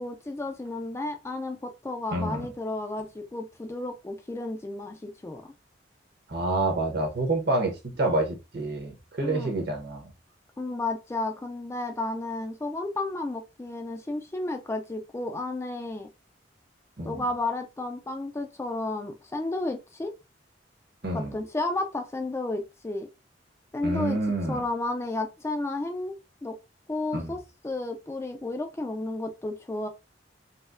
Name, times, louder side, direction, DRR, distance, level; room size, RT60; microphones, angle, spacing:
voice 1, 0.0-5.5 9.2-9.5 10.6-16.1 17.0-20.1 21.1-23.1 23.7-24.2 24.5-26.6 26.9-29.9, left 2 dB, 15° left, 0.3 m, -32 dB
voice 2, 2.1-2.5 6.3-10.1 17.0-17.2 21.0-21.3 23.8-24.6 27.1-27.3, right 2 dB, 60° right, 1.0 m, -28 dB
4.1 x 2.0 x 2.5 m
head